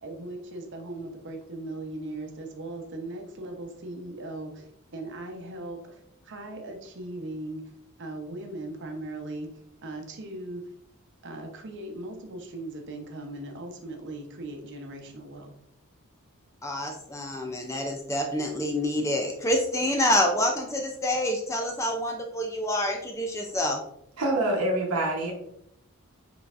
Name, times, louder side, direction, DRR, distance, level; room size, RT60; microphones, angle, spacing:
voice 1, 0.0-7.7 8.0-10.7 11.2-15.5 16.6-16.7, right 2 dB, 55° right, 4 dB, 0.8 m, -39 dB
voice 2, 16.6-23.8, left 1 dB, 15° left, 2 dB, 0.4 m, -27 dB
voice 3, 24.2-25.3, right 1 dB, 85° right, -2 dB, 1.0 m, -25 dB
5.3 x 3.9 x 2.5 m, 0.74 s
head